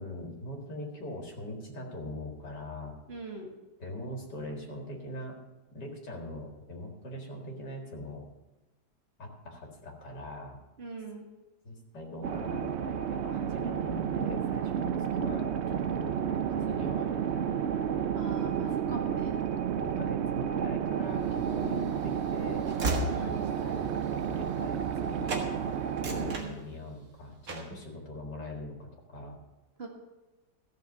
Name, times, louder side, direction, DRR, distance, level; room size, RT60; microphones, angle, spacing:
voice 1, 0.0-3.0 3.8-5.4 5.7-8.2 9.2-10.6 11.6-16.1 16.5-17.6 18.9-19.0 19.7-22.7 23.2-23.9 24.2-25.7 26.0-29.4, left 1 dB, 80° left, 0 dB, 2.6 m, -41 dB
voice 2, 3.1-3.5 10.8-11.3 18.1-19.3 23.1-23.5 26.1-26.7 29.8-29.9, right 4 dB, 40° right, 0 dB, 1.9 m, -41 dB
sound 1, 12.2-26.4, right 8 dB, 85° right, 0.6 m, -31 dB
Train / Slam, 21.4-25.0 25.3-25.5 25.9-27.1 27.5-27.8, right 1 dB, 55° right, 2.1 m, -36 dB
15.0 x 6.5 x 6.7 m, 1.1 s
omnidirectional pair, 1.8 m